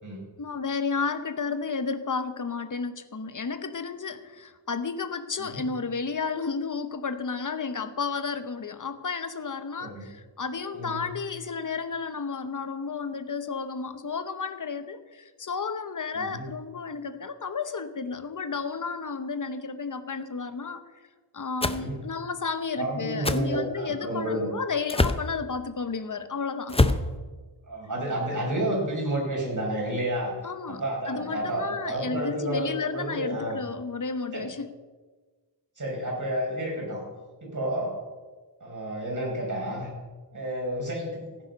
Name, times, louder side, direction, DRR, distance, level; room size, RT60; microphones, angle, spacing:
voice 1, 0.4-20.8 21.3-26.8 30.4-30.8 31.1-34.7, left 5 dB, 45° left, 11 dB, 1.0 m, -32 dB
voice 2, 10.7-11.1 16.2-16.5 21.6-22.0 22.8-24.5 27.6-30.3 30.7-33.6 34.3-34.5 35.8-37.1 37.4-38.0 38.6-39.9 40.3-41.2, right 1 dB, 45° right, -2 dB, 5.2 m, -30 dB
sound 1, 21.6-21.8 23.2-23.4 24.9-25.2 26.7-27.1, left 2 dB, 15° left, 0.6 m, -23 dB
15.5 x 9.6 x 5.3 m, 1.3 s
wide cardioid pair, 100°, 43 cm